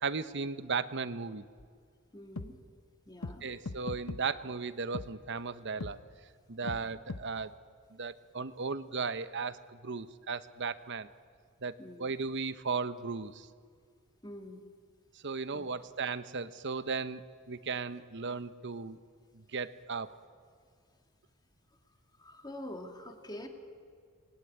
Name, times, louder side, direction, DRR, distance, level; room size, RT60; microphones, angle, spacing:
voice 1, 0.0-1.4 3.4-6.0 6.5-7.5 7.9-11.1 11.6-13.5 15.2-19.0 19.3-20.1, right 4 dB, 55° right, 13 dB, 1.0 m, -36 dB
sound 1, 1.6-1.7 2.4-2.5 3.2-3.4 3.7-4.2 4.9-5.1 5.8-5.9 6.7-6.8 7.1-7.2, left 3 dB, 85° left, 1.0 m, -38 dB
voice 2, 2.1-2.6 3.1-3.4 6.6-6.8 11.8-12.1 14.2-14.6 15.5-15.6 22.2-23.5, left 1 dB, 20° left, 4 dB, 2.5 m, -45 dB
26.5 x 20.5 x 9.7 m, 2.1 s
head